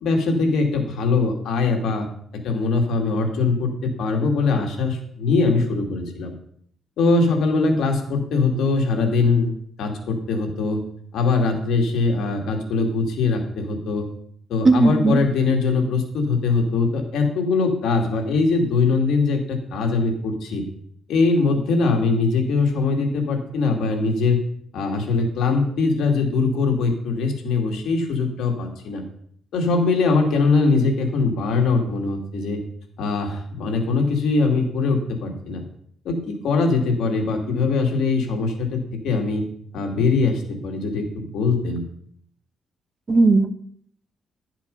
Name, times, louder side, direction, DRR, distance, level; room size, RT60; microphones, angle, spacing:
voice 1, 0.0-2.1 2.4-6.3 7.0-9.5 9.8-10.8 11.1-14.1 14.5-20.6 21.1-24.4 24.7-29.0 29.5-32.6 33.0-35.6 36.0-39.4 39.7-41.8, left 4 dB, 80° left, 2 dB, 2.4 m, -21 dB
voice 2, 14.6-15.2 43.1-43.5, right 3 dB, 30° right, 12 dB, 0.8 m, -16 dB
12.0 x 7.5 x 5.4 m, 0.64 s
cardioid pair, 115°, 0 cm